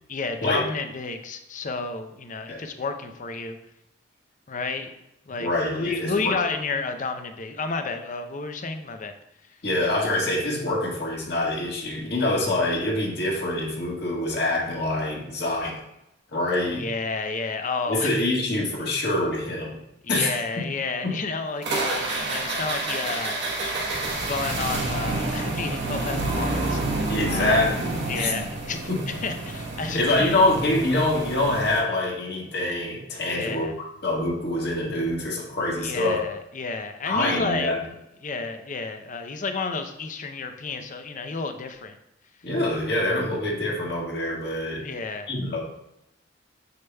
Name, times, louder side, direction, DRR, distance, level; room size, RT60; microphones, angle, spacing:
voice 1, 0.1-3.6 4.5-4.9 5.3-9.1 16.7-18.2 20.0-23.4 24.3-27.6 28.1-28.8 29.1-30.4 33.3-33.7 35.8-37.7 38.2-42.0 44.8-45.3, left 4 dB, 40° left, 7 dB, 0.6 m, -31 dB
voice 2, 5.4-6.4 9.6-15.8 16.3-16.8 17.9-19.8 20.1-20.3 21.0-21.1 27.1-28.3 28.9-29.0 29.9-33.7 34.0-36.2 37.0-37.8 42.4-44.8 45.3-45.6, left 1 dB, 60° left, -3 dB, 1.6 m, -25 dB
sound 1, 21.6-31.8, right 2 dB, 65° right, 1.2 m, -29 dB
6.9 x 6.6 x 2.2 m, 0.84 s
head